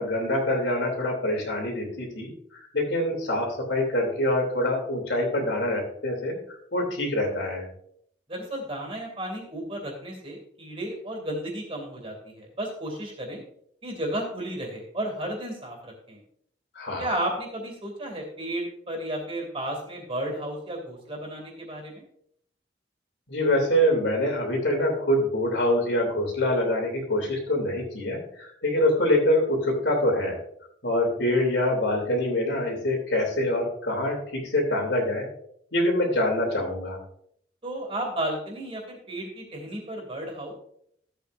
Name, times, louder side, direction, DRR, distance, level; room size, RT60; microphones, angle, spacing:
voice 1, 0.0-7.7 16.7-17.1 23.3-30.4 30.8-35.3 35.7-37.0, left 1 dB, 75° left, 1 dB, 3.0 m, -25 dB
voice 2, 8.3-13.4 13.8-16.2 17.0-22.0 37.6-40.5, right 1 dB, 30° right, 1 dB, 2.6 m, -33 dB
14.0 x 8.2 x 2.6 m, 0.69 s
head